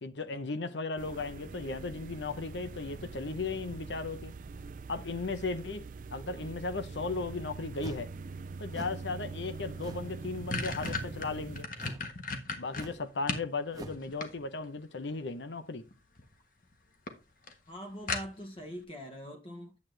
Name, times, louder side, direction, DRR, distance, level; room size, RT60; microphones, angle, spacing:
voice 1, 0.0-4.3 4.9-8.1 8.6-11.7 12.6-15.8, left 3 dB, 80° left, 0.8 m, -36 dB
sound 1, 1.0-11.6, right 4 dB, 45° right, 0.4 m, -43 dB
sound 2, 7.8-8.1 8.7-9.0 9.8-10.2 10.8-11.1 11.8-12.1 12.7-13.1 13.7-14.0, right 1 dB, 20° right, 0.8 m, -45 dB
sound 3, 9.6-9.7 10.0-13.5 13.9-14.8 15.9-16.3 16.6-16.7 17.1-17.2 17.5-17.6 18.1-18.6, left 3 dB, 50° left, 1.4 m, -36 dB
voice 2, 17.7-19.8, equal, 30° left, 0.9 m, -43 dB
9.7 x 7.8 x 3.3 m
head